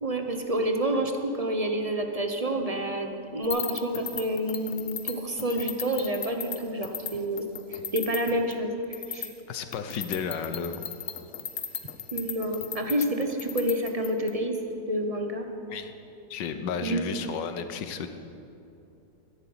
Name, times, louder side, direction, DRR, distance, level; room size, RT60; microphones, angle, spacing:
voice 1, 0.0-7.4 7.7-9.3 12.1-14.6 14.9-15.5 16.8-17.0, right 1 dB, 25° right, 5 dB, 0.9 m, -29 dB
sound 1, 3.4-6.6 6.8-7.1 7.4-8.5 8.9-9.3 9.7-14.3, left 8 dB, 55° left, 1.3 m, -35 dB
voice 2, 9.5-10.9 15.7-15.9 16.3-18.1, left 6 dB, 80° left, 9 dB, 1.6 m, -33 dB
13.5 x 11.0 x 8.7 m, 2.8 s
omnidirectional pair, 1.9 m